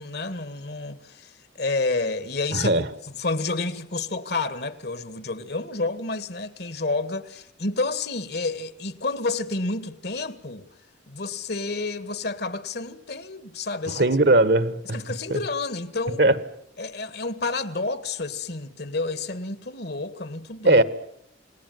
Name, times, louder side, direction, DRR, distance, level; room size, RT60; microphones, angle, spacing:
voice 1, 0.0-1.3 1.6-2.7 3.2-10.6 11.1-14.0 14.9-16.2 16.8-20.8, left 3 dB, 60° left, 1.9 m, -29 dB
voice 2, 2.5-2.9 13.9-15.0 15.3-15.4 16.2-16.4 20.7-20.8, right 2 dB, 60° right, 1.6 m, -19 dB
28.5 x 19.5 x 9.5 m
head